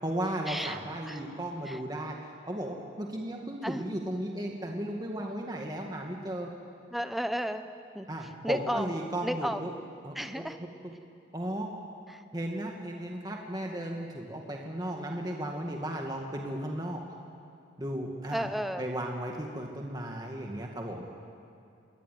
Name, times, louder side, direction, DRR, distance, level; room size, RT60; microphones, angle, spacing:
voice 1, 0.0-2.2 2.5-6.5 8.1-9.7 10.0-10.9 11.3-11.7 12.3-17.0 17.8-18.5 18.8-21.1, right 1 dB, 20° right, 1 dB, 1.9 m, -35 dB
voice 2, 6.9-7.7 7.9-8.1 8.4-8.9 9.2-9.6 10.2-10.6 12.1-12.2 18.3-18.8, equal, ahead, 8 dB, 0.9 m, -32 dB
27.0 x 22.0 x 9.3 m, 2.5 s
head